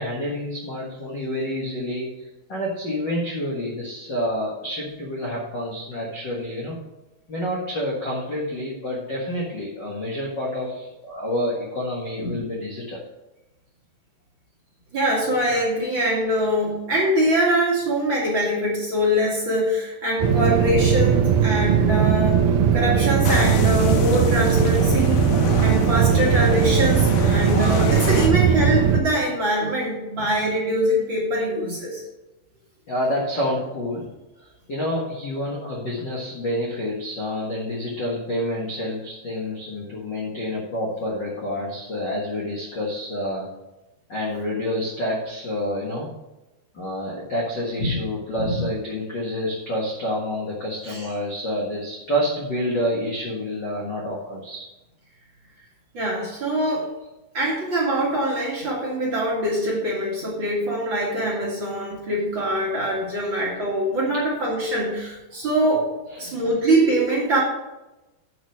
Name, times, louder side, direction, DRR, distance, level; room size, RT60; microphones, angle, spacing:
voice 1, 0.0-6.8 7.3-13.0 32.9-34.1 34.4-43.5 44.1-46.1 46.7-54.6 66.1-66.4, equal, 65° left, -3 dB, 1.1 m, -28 dB
voice 2, 14.9-25.3 25.6-32.0 47.8-48.0 48.4-48.6 50.9-51.1 55.9-56.9 57.3-65.9 66.2-67.4, right 1 dB, 40° right, -4 dB, 2.2 m, -23 dB
sound 1, 20.2-29.0, right 7 dB, 85° right, 1.8 m, -19 dB
sound 2, 23.2-28.3, left 7 dB, 85° left, 3.2 m, -27 dB
8.1 x 6.3 x 6.2 m, 1.0 s
omnidirectional pair, 4.7 m